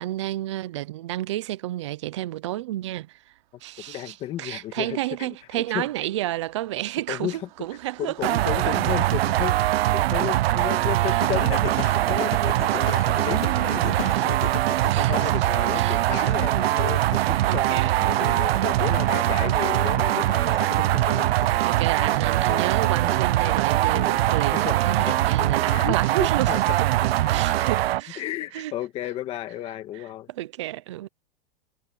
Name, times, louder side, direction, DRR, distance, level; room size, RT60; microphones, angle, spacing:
voice 1, 0.0-3.2 3.6-8.3 10.9-11.2 13.9-14.5 14.8-16.3 17.4-18.4 21.6-26.9 27.3-28.2 28.5-28.7 30.3-31.1, right 15 dB, 30° right, 0.5 m, -31 dB
Car passing by, 3.3-18.8 19.3-19.4 19.7-19.9, right 16 dB, 50° right, 4.1 m, -51 dB
voice 2, 3.9-5.9 7.1-7.4 8.0-14.6 15.1-21.3 23.0-23.2 24.5-25.2 25.7-26.8 28.2-30.3, left 13 dB, 20° left, 2.0 m, -34 dB
sound 1, 8.2-28.0, right 15 dB, 85° right, 0.6 m, -22 dB
Singing, 11.2-15.3 15.7-26.1, left 13 dB, 75° left, 2.2 m, -38 dB
supercardioid pair, 180°, 30 cm